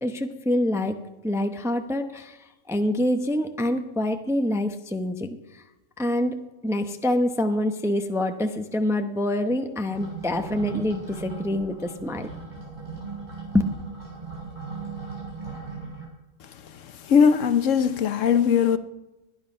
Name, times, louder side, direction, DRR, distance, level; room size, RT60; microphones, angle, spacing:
voice 1, 0.0-1.0 1.2-2.4 2.7-5.6 6.0-12.3, left 1 dB, 5° right, 0.6 m, -26 dB
sound 1, 9.9-16.1, right 4 dB, 35° right, 5.2 m, -37 dB
voice 2, 16.8-18.8, left 7 dB, 70° left, 1.1 m, -20 dB
21.0 x 9.7 x 5.4 m
omnidirectional pair, 1.4 m